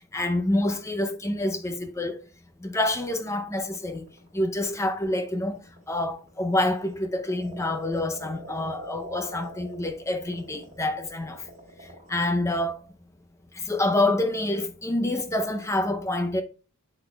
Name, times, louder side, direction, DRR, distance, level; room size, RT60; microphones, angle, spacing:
voice 1, 0.1-2.2 2.6-4.1 4.3-5.6 5.9-11.4 12.1-12.8 13.6-16.4, left 1 dB, 15° left, 0.6 m, -27 dB
sound 1, 3.1-12.1, equal, 35° right, 3.5 m, -43 dB
7.9 x 7.7 x 2.3 m
head